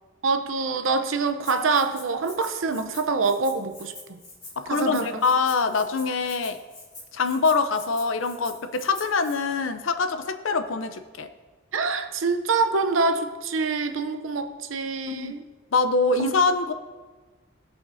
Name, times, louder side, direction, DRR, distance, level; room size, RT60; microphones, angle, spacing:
voice 1, 0.2-4.2 4.7-5.2 11.7-15.4 16.2-16.3, right 4 dB, 75° right, 8 dB, 0.7 m, -25 dB
Rattle (instrument), 1.4-9.4, left 2 dB, 20° left, 2.9 m, -45 dB
voice 2, 4.6-6.6 7.1-11.3 15.1-15.3 15.7-16.7, left 4 dB, 70° left, 9 dB, 0.6 m, -24 dB
16.5 x 5.9 x 2.7 m, 1.3 s
head